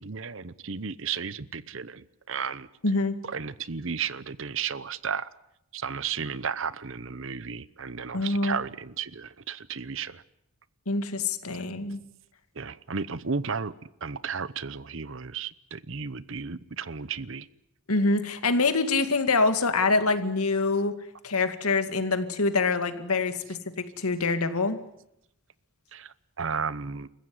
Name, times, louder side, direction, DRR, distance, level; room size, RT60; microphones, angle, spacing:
voice 1, 0.0-2.7 3.2-5.3 5.7-10.2 12.6-13.7 14.0-17.5 25.9-26.1 26.4-27.1, right 6 dB, 60° right, 17 dB, 0.9 m, -33 dB
voice 2, 2.8-3.2 8.1-8.6 10.9-12.0 17.9-20.9 21.2-24.8, left 3 dB, 85° left, 9 dB, 2.1 m, -25 dB
28.0 x 15.5 x 9.6 m, 0.80 s
head